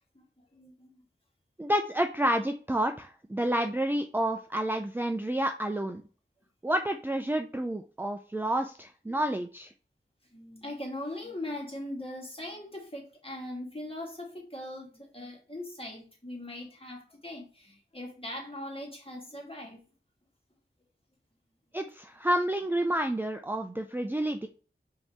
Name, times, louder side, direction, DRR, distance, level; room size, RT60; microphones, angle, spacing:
voice 1, 0.1-1.0 4.8-4.9 9.1-9.2 10.3-19.8, left 1 dB, 25° left, 1.7 m, -40 dB
voice 2, 1.6-6.0 6.6-9.7 21.7-24.5, right 1 dB, 10° right, 0.4 m, -29 dB
5.5 x 2.8 x 3.4 m
wide cardioid pair, 55°, 20 cm